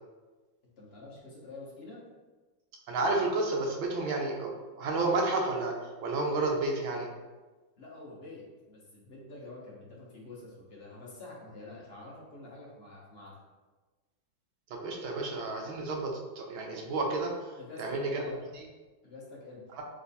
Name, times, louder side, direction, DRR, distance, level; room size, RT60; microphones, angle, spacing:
voice 1, 0.8-2.0 7.8-13.4 17.6-18.4 19.0-19.6, left 2 dB, 50° left, -5 dB, 0.7 m, -47 dB
voice 2, 2.9-7.1 14.7-17.5 17.8-18.2 19.7-19.8, right 2 dB, 80° right, 0 dB, 1.6 m, -31 dB
3.5 x 3.2 x 4.0 m, 1.3 s
omnidirectional pair, 2.2 m